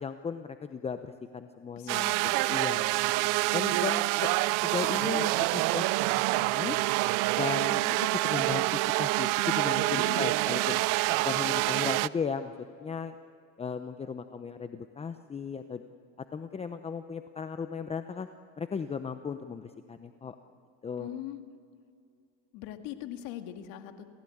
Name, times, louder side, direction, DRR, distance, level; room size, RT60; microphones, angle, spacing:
voice 1, 0.0-2.2 2.4-3.0 3.5-4.3 4.6-6.8 7.3-7.8 8.1-10.8 11.2-12.5 12.8-13.1 13.6-15.8 16.3-18.3 18.6-20.4 20.8-21.1, left 6 dB, 15° left, 9 dB, 0.8 m, -36 dB
voice 2, 1.7-2.4 7.7-8.0 9.9-10.4 21.0-21.4 22.5-24.0, left 12 dB, 65° left, 6 dB, 2.2 m, -41 dB
sound 1, 1.9-12.1, right 21 dB, 60° right, 0.6 m, -27 dB
29.0 x 16.0 x 8.7 m, 2.4 s
supercardioid pair, 115°, 36 cm